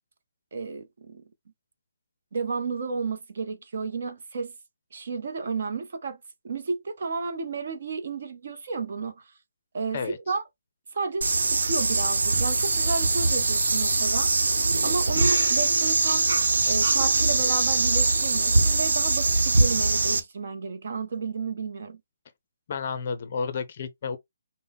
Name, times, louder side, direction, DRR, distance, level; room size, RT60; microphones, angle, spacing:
voice 1, 0.5-1.2 2.3-4.5 4.9-6.2 6.4-9.3 9.7-10.4 10.9-14.3 14.8-16.3 16.6-22.0, right 4 dB, 40° right, 0.7 m, -32 dB
sound 1, 11.2-20.2, right 3 dB, 70° right, 1.0 m, -22 dB
voice 2, 22.7-24.2, left 5 dB, 30° left, 0.6 m, -31 dB
5.3 x 2.1 x 3.6 m
hypercardioid pair, 175°, 0 cm